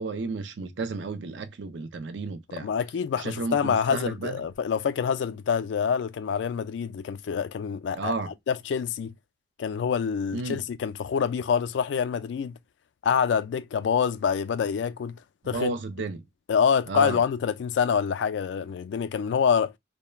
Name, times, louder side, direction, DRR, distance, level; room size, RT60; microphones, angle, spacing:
voice 1, 0.0-2.7 3.1-4.4 7.9-8.3 10.3-10.6 15.4-16.3 16.9-17.2, right 3 dB, 80° right, 0.4 m, -32 dB
voice 2, 2.6-8.1 8.5-9.1 9.6-12.6 13.0-15.2 15.5-15.7 16.5-19.7, left 7 dB, 80° left, 0.3 m, -26 dB
2.3 x 2.1 x 3.0 m
head